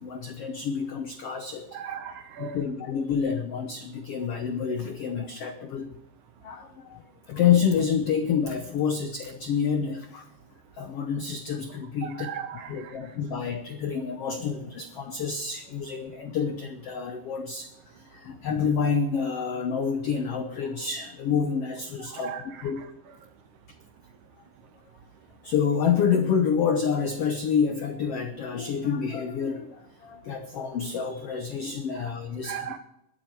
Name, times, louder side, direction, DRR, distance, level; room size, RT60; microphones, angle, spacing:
voice 1, 0.0-1.8 2.4-5.9 6.4-10.3 10.7-12.3 12.7-22.3 22.6-22.8 25.4-32.8, left 6 dB, 80° left, 6 dB, 1.3 m, -28 dB
voice 2, 1.7-2.6 12.0-13.1 22.1-22.9 31.9-32.1 32.4-32.8, right 8 dB, 75° right, 9 dB, 2.0 m, -38 dB
21.5 x 8.7 x 4.6 m, 0.83 s
omnidirectional pair, 4.1 m